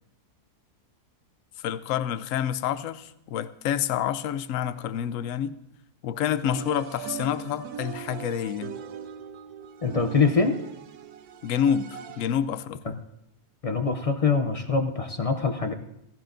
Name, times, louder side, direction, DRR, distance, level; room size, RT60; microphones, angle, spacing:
voice 1, 1.6-5.6 6.0-8.7 11.4-12.9, left 9 dB, 65° left, 14 dB, 0.9 m, -28 dB
sound 1, 6.4-12.5, right 9 dB, 80° right, 1.2 m, -40 dB
voice 2, 9.8-10.6 12.9-13.0 13.6-15.7, left 4 dB, 45° left, 6 dB, 0.4 m, -24 dB
17.0 x 15.0 x 2.6 m, 0.81 s
omnidirectional pair, 1.6 m